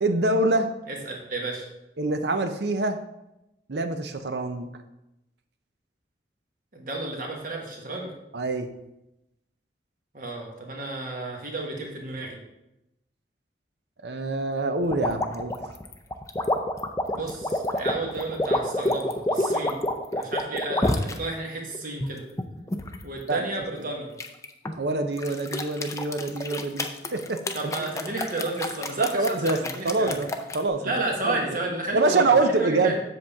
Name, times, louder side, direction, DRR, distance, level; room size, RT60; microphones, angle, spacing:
voice 1, 0.0-0.7 2.0-3.0 3.7-4.7 8.3-8.7 14.0-15.5 23.3-23.5 24.8-27.4 27.8-27.9 29.0-30.3 30.5-30.9 31.3-31.6 31.9-33.0, right 2 dB, 65° right, 8 dB, 0.7 m, -25 dB
voice 2, 0.9-1.7 6.7-8.1 10.1-12.4 17.1-19.9 20.1-22.2 23.0-24.1 27.5-30.2 30.8-33.0, right 2 dB, 50° right, 0 dB, 1.5 m, -32 dB
sound 1, 14.9-21.2 21.7-23.0 24.2-24.8 25.2-30.6, left 1 dB, 15° left, 0.5 m, -28 dB
7.8 x 7.1 x 3.6 m, 0.91 s
head